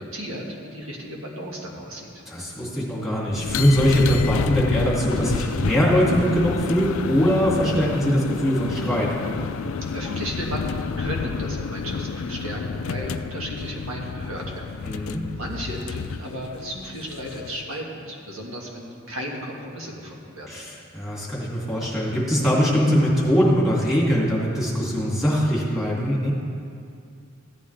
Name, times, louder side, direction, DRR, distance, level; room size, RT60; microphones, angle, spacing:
voice 1, 0.0-2.1 9.9-20.5, equal, 75° right, -1 dB, 1.8 m, -34 dB
voice 2, 2.3-9.1 14.8-15.2 20.5-26.3, equal, ahead, -6 dB, 2.5 m, -22 dB
sound 1, 3.3-17.7, left 5 dB, 70° left, 0.4 m, -29 dB
14.5 x 9.5 x 3.4 m, 2.4 s
head